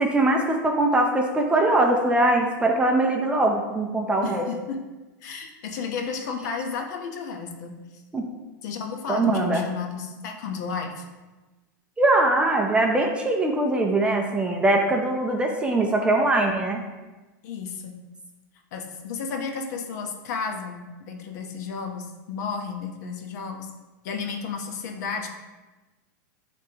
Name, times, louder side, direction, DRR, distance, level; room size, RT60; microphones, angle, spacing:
voice 1, 0.0-4.4 8.1-8.3 9.1-9.6 12.0-16.8, right 2 dB, 10° right, 2 dB, 0.6 m, -22 dB
voice 2, 4.2-4.8 5.2-7.8 8.6-11.0 17.4-18.0 18.7-23.7 24.0-25.3, left 5 dB, 60° left, 3 dB, 1.0 m, -32 dB
9.7 x 3.5 x 2.9 m, 1.2 s
supercardioid pair, 145°, 10 cm